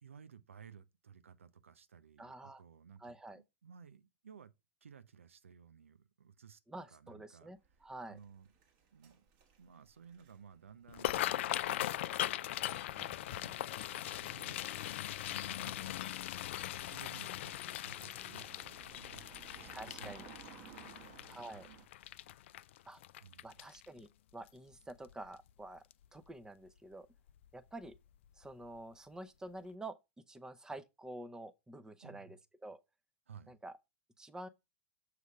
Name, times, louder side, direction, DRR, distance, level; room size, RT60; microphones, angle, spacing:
voice 1, 0.0-4.5 4.8-6.6 6.9-7.5 8.1-8.5 8.9-9.2 9.6-16.1 16.6-21.3 21.5-21.8 23.2-23.6 32.0-32.4 33.3-33.6, right 7 dB, 85° right, 0.6 m, -57 dB
voice 2, 2.2-2.6 3.0-3.4 6.7-8.2 19.7-20.3 21.2-21.7 22.9-23.0 23.4-25.8 26.1-27.1 27.5-28.0 28.4-32.8 33.5-33.7 34.2-34.5, right 2 dB, 10° right, 0.7 m, -48 dB
sound 1, 7.6-13.2 13.5-13.7 14.4-21.9, right 7 dB, 55° right, 1.7 m, -59 dB
sound 2, 10.9-24.0 24.5-24.7 25.1-25.5 25.9-26.1 27.3-27.5 27.8-28.0 28.4-28.5, left 13 dB, 65° left, 0.3 m, -40 dB
6.6 x 3.3 x 4.9 m
hypercardioid pair, 95°, 7 cm